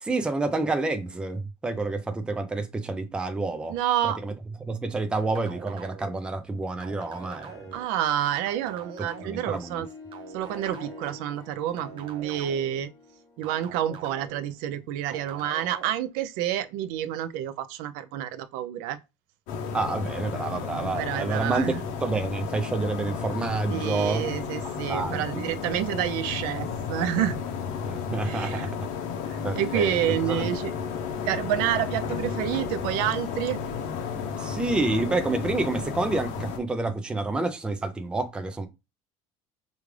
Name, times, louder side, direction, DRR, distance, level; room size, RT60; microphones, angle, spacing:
voice 1, 0.0-3.8 4.2-4.3 4.6-7.7 9.2-9.8 19.7-21.7 22.0-24.3 24.9-25.6 27.9-28.9 29.4-30.5 34.4-38.7, right 3 dB, 5° right, 0.4 m, -29 dB
voice 2, 3.7-4.2 7.7-9.9 10.3-12.9 13.4-19.0 20.7-21.8 23.7-27.4 28.2-28.7 29.3-30.7 31.2-33.6, right 11 dB, 80° right, 0.5 m, -29 dB
sound 1, 5.1-6.2 6.8-7.8 8.5-9.5 10.1-11.2 11.8-12.8 13.4-14.5 15.1-15.9, right 7 dB, 40° right, 0.7 m, -44 dB
Harp, 7.0-15.6, left 4 dB, 30° left, 1.4 m, -49 dB
sound 2, 19.5-36.6, left 6 dB, 65° left, 0.9 m, -33 dB
5.0 x 2.3 x 3.2 m
cardioid pair, 175°, 14 cm